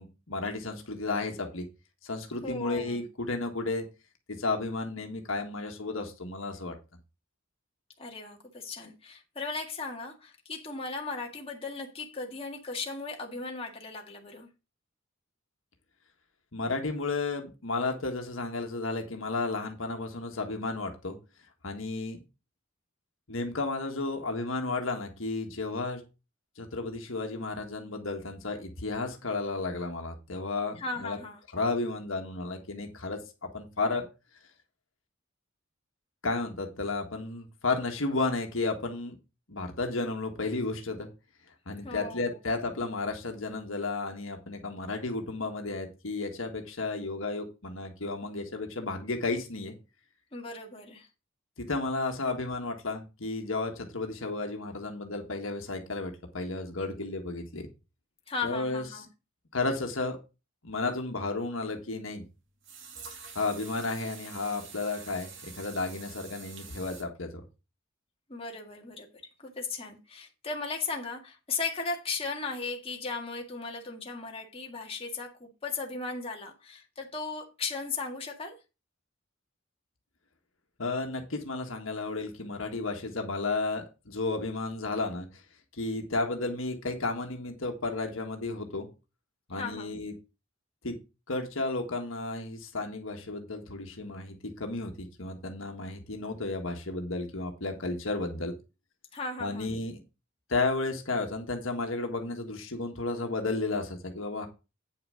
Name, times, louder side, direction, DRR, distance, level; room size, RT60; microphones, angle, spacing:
voice 1, 0.0-1.7 2.0-3.8 4.3-6.7 16.5-21.2 21.6-22.2 23.3-26.0 26.6-31.2 31.5-34.1 36.2-39.1 39.5-41.1 41.7-49.7 51.6-57.7 58.4-58.8 59.5-60.2 60.6-62.2 63.3-67.3 80.8-85.3 85.8-88.9 89.5-90.1 90.8-90.9 91.3-98.5 99.4-100.0 100.5-104.5, left 3 dB, 70° left, 1.6 m, -33 dB
voice 2, 2.4-3.0 8.0-14.5 30.8-31.4 41.8-42.3 50.3-51.1 58.3-59.1 68.3-78.6 89.5-89.9 99.1-99.7, left 4 dB, 30° left, 1.9 m, -37 dB
sound 1, 61.8-61.9 62.6-67.0, right 5 dB, 60° right, 2.4 m, -46 dB
8.8 x 6.0 x 5.1 m
head